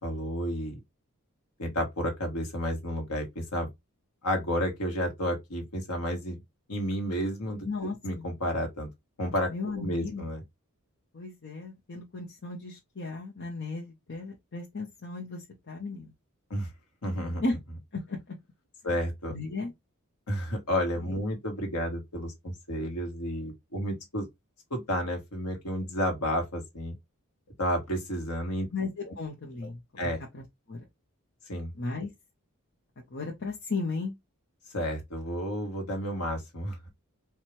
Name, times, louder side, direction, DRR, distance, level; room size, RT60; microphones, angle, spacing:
voice 1, 0.0-0.8 1.6-3.7 4.2-6.4 6.7-8.9 9.2-10.4 16.5-16.7 17.0-17.4 18.8-19.3 20.3-24.3 24.7-27.0 27.6-28.7 29.1-29.2 30.0-30.2 31.5-31.7 34.7-36.9, equal, 90° left, 1.4 m, -31 dB
voice 2, 7.6-8.3 9.5-10.3 11.1-16.1 17.4-17.5 17.9-18.3 19.3-19.7 21.0-21.2 28.7-29.8 30.3-30.8 31.8-32.1 33.0-34.1, left 3 dB, 55° left, 0.9 m, -35 dB
4.4 x 2.4 x 3.1 m
head